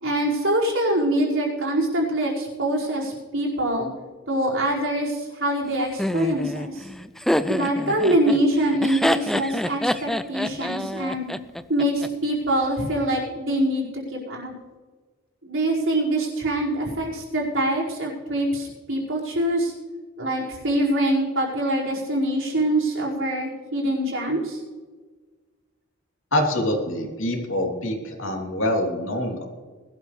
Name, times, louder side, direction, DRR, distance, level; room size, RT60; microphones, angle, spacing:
voice 1, 0.0-3.9 4.3-6.9 7.5-11.3 11.7-14.5 15.4-19.7 20.2-24.6, right 1 dB, 65° right, -5 dB, 5.1 m, -24 dB
Laughter, 6.0-12.1, equal, ahead, 0.3 m, -26 dB
voice 2, 26.3-29.4, left 1 dB, 65° left, 1 dB, 3.0 m, -25 dB
20.5 x 12.5 x 3.3 m, 1.4 s
head